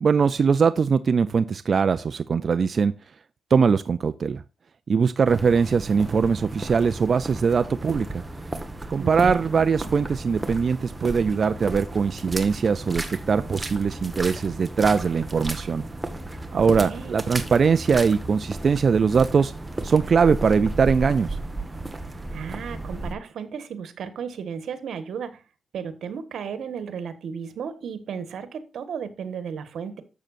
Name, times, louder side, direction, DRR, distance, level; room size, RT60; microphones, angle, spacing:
voice 1, 0.0-2.9 3.5-4.4 4.9-8.2 8.9-15.8 16.5-19.5 19.8-21.4, right 5 dB, 50° right, 0.4 m, -21 dB
sound 1, 5.2-23.1, right 2 dB, 15° right, 1.4 m, -34 dB
voice 2, 9.0-9.4 16.5-17.2 22.3-25.4 25.7-30.0, right 7 dB, 85° right, 1.4 m, -34 dB
12.0 x 7.5 x 2.6 m
wide cardioid pair, 120°, 0 cm